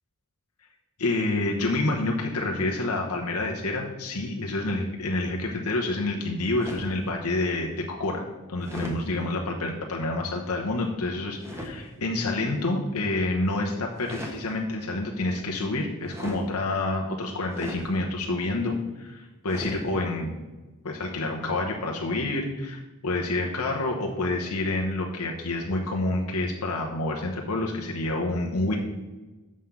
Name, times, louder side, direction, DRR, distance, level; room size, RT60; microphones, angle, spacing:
voice 1, 1.0-8.2 8.5-20.3 20.8-28.8, left 2 dB, 80° left, 0 dB, 1.0 m, -28 dB
sound 1, 6.6-7.0 8.6-9.0 11.4-11.7 13.9-14.4 16.1-16.5 17.5-17.9 19.5-19.8, equal, 15° right, 1.3 m, -36 dB
6.4 x 5.7 x 7.1 m, 1.2 s
head